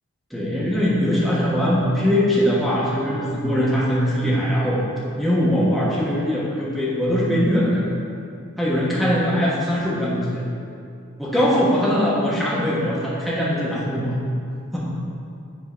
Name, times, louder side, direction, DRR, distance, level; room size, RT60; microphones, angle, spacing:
voice 1, 0.3-4.8 5.2-7.9 8.6-10.4 11.2-14.1 14.7-14.9, equal, ahead, -7 dB, 1.2 m, -21 dB
8.2 x 3.9 x 5.0 m, 2.4 s
head